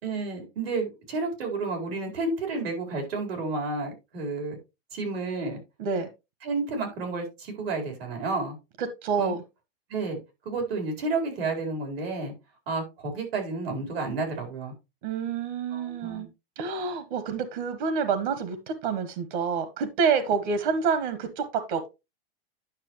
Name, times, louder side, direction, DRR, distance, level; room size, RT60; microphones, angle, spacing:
voice 1, 0.0-4.6 4.9-5.6 6.4-8.6 9.2-9.3 9.9-10.2 10.4-12.3 12.7-14.7 15.7-16.3, right 3 dB, 90° right, 3 dB, 4.3 m, -31 dB
voice 2, 8.8-9.4 15.0-16.3 16.6-21.9, right 5 dB, 60° right, 11 dB, 1.2 m, -28 dB
10.5 x 6.0 x 3.0 m, 0.25 s
supercardioid pair, 165°, 29 cm